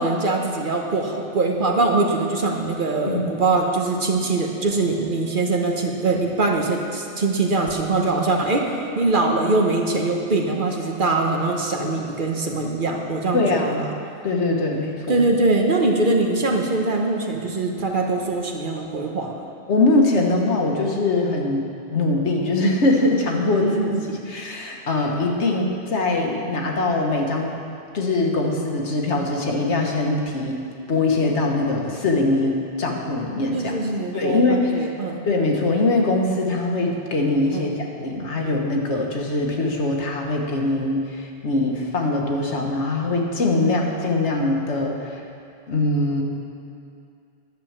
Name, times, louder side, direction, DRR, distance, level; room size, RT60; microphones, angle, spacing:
voice 1, 0.0-13.8 15.1-19.3 23.6-24.0 33.5-35.2 37.5-37.7 43.6-43.8, right 3 dB, 50° right, 2 dB, 1.0 m, -22 dB
voice 2, 3.1-3.4 11.7-11.9 13.3-13.8 14.2-15.2 19.7-23.8 24.3-27.5 27.9-30.6 30.9-33.8 34.1-34.9 35.3-45.2 45.7-46.2, left 2 dB, 75° left, 1 dB, 1.5 m, -22 dB
10.5 x 6.8 x 7.2 m, 2.5 s
omnidirectional pair, 1.2 m